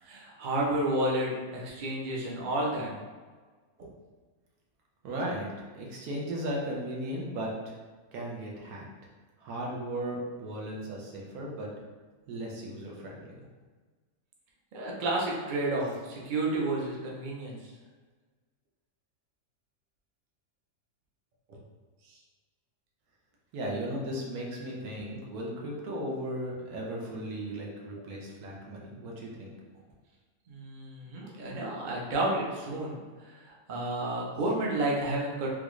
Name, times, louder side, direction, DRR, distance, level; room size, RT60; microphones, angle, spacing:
voice 1, 0.0-2.9 14.7-17.6 30.5-35.5, right 1 dB, 50° right, -3 dB, 0.6 m, -31 dB
voice 2, 5.0-7.8 8.1-8.8 9.4-11.7 12.3-13.4 23.5-29.5, right 1 dB, 80° right, -2 dB, 1.2 m, -36 dB
3.8 x 2.3 x 3.0 m, 1.4 s
omnidirectional pair, 1.5 m